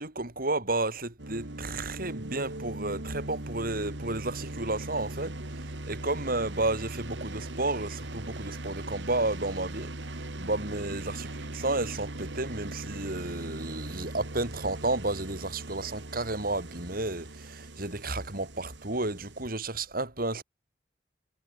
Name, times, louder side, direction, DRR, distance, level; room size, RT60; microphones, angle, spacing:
voice 1, 0.0-5.3 5.9-9.9 10.4-11.3 11.5-20.4, right 2 dB, 55° right, 4.8 m, -32 dB
sound 1, 1.2-19.4, right 1 dB, 90° right, 2.6 m, -40 dB
head